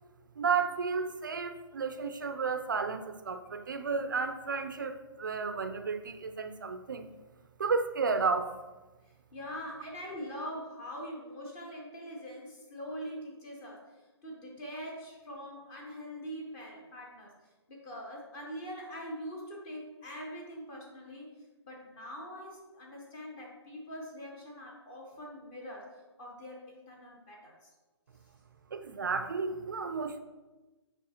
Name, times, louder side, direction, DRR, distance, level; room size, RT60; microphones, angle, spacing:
voice 1, 0.4-7.1 7.6-8.5 28.7-30.2, right 5 dB, 45° right, 9 dB, 0.4 m, -32 dB
voice 2, 9.3-13.8 14.2-17.3 17.7-21.3 21.6-25.9 26.2-27.7, equal, 10° left, -1 dB, 0.5 m, -43 dB
7.4 x 5.2 x 2.8 m, 1.1 s
hypercardioid pair, 170°, 15 cm